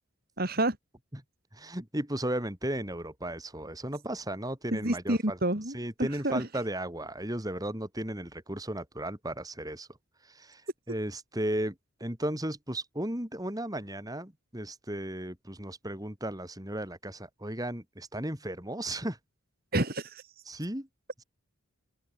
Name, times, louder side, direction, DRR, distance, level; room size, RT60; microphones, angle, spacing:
voice 1, 0.4-0.8 4.7-6.4 19.7-20.2, right 1 dB, 45° right, 3.4 m, -29 dB
voice 2, 1.5-5.4 5.7-9.9 10.2-10.6 10.9-11.8 12.0-19.2 20.5-20.9, right 1 dB, 15° right, 3.5 m, -35 dB
open air
head